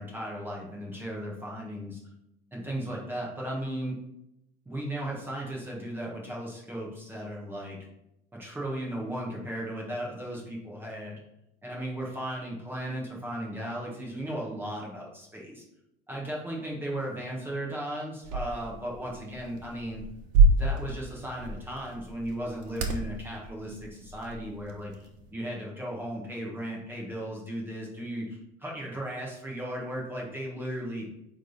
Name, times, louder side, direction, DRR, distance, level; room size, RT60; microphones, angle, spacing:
voice 1, 0.0-2.0 2.5-4.0 4.6-7.8 8.3-11.2 11.6-15.6 16.1-20.0 20.6-31.1, right 1 dB, 10° right, -3 dB, 1.4 m, -36 dB
Wood crack Record, 18.2-25.3, right 3 dB, 85° right, 1.2 m, -29 dB
8.9 x 3.5 x 4.1 m, 0.83 s
cardioid pair, 155°, 21 cm